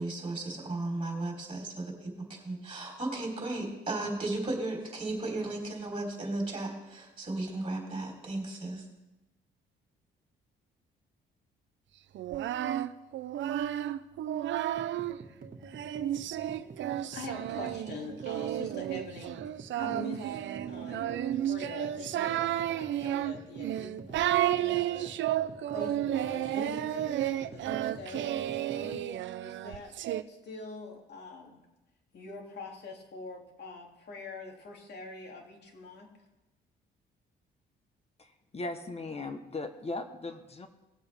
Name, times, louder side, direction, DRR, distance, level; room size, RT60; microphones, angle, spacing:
voice 1, 0.0-8.8, right 2 dB, 25° right, -1 dB, 3.7 m, -35 dB
Singing, 12.2-15.2 15.7-30.2, right 12 dB, 70° right, 0.6 m, -32 dB
sound 1, 14.7-29.1, right 4 dB, 45° right, 1.7 m, -48 dB
voice 2, 17.1-19.4 19.8-20.4 20.7-25.1 25.7-29.1 29.4-29.9 30.2-31.6 32.1-36.1, left 3 dB, 55° left, 1 dB, 2.7 m, -44 dB
voice 3, 38.2-40.7, left 2 dB, 30° left, 8 dB, 1.1 m, -38 dB
19.0 x 8.0 x 3.5 m, 0.98 s
cardioid pair, 90°, 20 cm